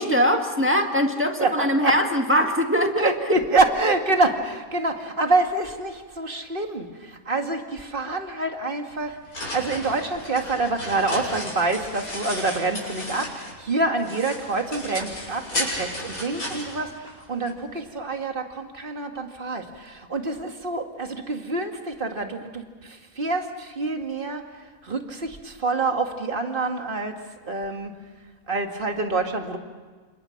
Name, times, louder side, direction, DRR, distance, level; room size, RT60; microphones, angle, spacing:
voice 1, 0.0-3.4, equal, 10° right, 3 dB, 1.7 m, -22 dB
voice 2, 1.4-2.0 3.0-9.2 9.5-24.4 24.8-27.1 27.5-27.9 28.5-29.6, right 3 dB, 40° right, 4 dB, 2.1 m, -26 dB
sound 1, 8.9-13.6 14.0-17.5, left 1 dB, 80° left, 7.3 m, -34 dB
28.5 x 26.5 x 5.9 m, 1.4 s
omnidirectional pair, 1.5 m